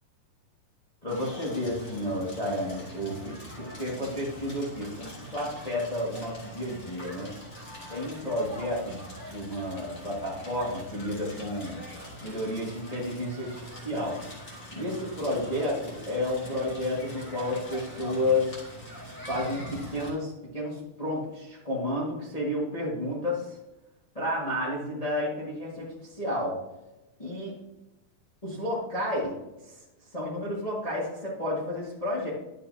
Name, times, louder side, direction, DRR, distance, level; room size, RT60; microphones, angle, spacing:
voice 1, 1.0-7.3 7.9-9.0 9.3-11.8 12.2-14.2 14.7-18.6 19.3-23.6 24.1-26.6 27.2-27.5 28.4-29.3 30.1-32.3, left 1 dB, 50° left, -6 dB, 0.4 m, -31 dB
Crackle, 1.1-20.1, equal, 25° left, 2.1 m, -43 dB
11.5 x 7.4 x 2.8 m, 0.98 s
omnidirectional pair, 4.2 m